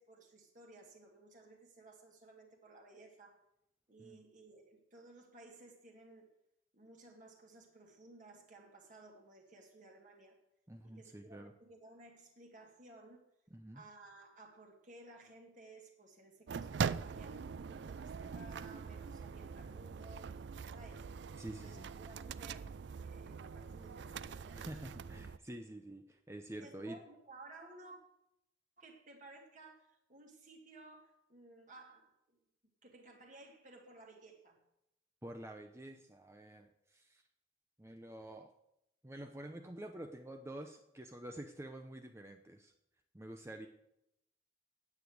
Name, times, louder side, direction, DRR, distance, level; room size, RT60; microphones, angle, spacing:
voice 1, 0.0-3.4 3.9-6.3 6.7-10.4 10.8-13.3 13.7-20.4 20.7-21.2 21.5-24.7 26.6-28.0 28.8-32.4 32.8-34.6, right 2 dB, 45° right, 0 dB, 2.3 m, -57 dB
voice 2, 10.7-11.5 13.5-13.8 21.4-21.9 24.5-27.0 35.2-37.2 37.8-38.5 39.0-42.7 43.1-43.7, right 1 dB, 15° right, 4 dB, 0.7 m, -48 dB
sound 1, 16.5-25.4, right 6 dB, 65° right, 0.4 m, -42 dB
9.7 x 8.4 x 7.9 m, 0.82 s
head